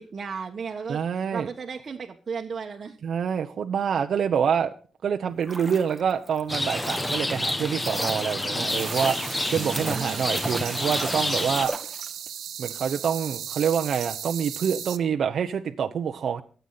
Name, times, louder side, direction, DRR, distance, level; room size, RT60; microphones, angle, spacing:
voice 1, 0.0-3.0 9.5-10.2, right 5 dB, 40° right, 0 dB, 1.4 m, -35 dB
voice 2, 0.9-1.5 3.0-4.7 5.0-11.7 12.6-16.4, right 7 dB, 60° right, 6 dB, 0.9 m, -26 dB
sound 1, 5.3-12.4 12.7-12.8, right 2 dB, 15° right, 1.5 m, -37 dB
Rain, 6.5-11.7, left 1 dB, 15° left, 1.1 m, -29 dB
sound 2, 8.7-15.0, right 9 dB, 85° right, 1.2 m, -36 dB
24.0 x 8.2 x 4.1 m, 0.41 s
wide cardioid pair, 135°, 0 cm